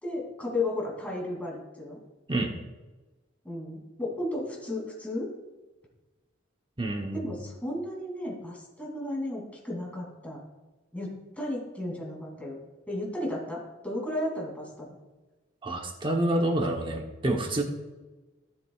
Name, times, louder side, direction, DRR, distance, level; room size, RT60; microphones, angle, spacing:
voice 1, 0.0-2.0 3.4-5.3 7.1-10.4 10.9-12.6 12.9-14.9, left 1 dB, 10° left, -3 dB, 2.8 m, -34 dB
voice 2, 6.8-7.2 15.6-17.6, right 1 dB, 25° right, 2 dB, 1.0 m, -28 dB
14.0 x 7.6 x 2.4 m, 1.2 s
head